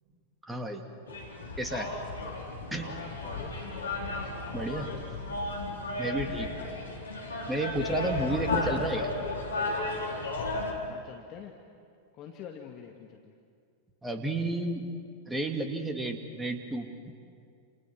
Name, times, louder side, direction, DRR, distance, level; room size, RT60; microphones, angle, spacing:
voice 1, 0.4-0.8 1.6-1.9 2.7-2.9 4.5-4.9 6.0-6.5 7.5-9.1 14.0-14.9 15.3-16.9, right 2 dB, 10° right, 5 dB, 2.6 m, -31 dB
sound 1, 1.1-10.7, left 2 dB, 75° left, 4.5 m, -34 dB
voice 2, 3.2-3.6 4.7-5.2 10.9-11.6 12.1-13.3, left 8 dB, 35° left, 2 dB, 2.0 m, -46 dB
29.0 x 28.5 x 6.2 m, 2.3 s
figure-of-eight pair, 90°, 0 cm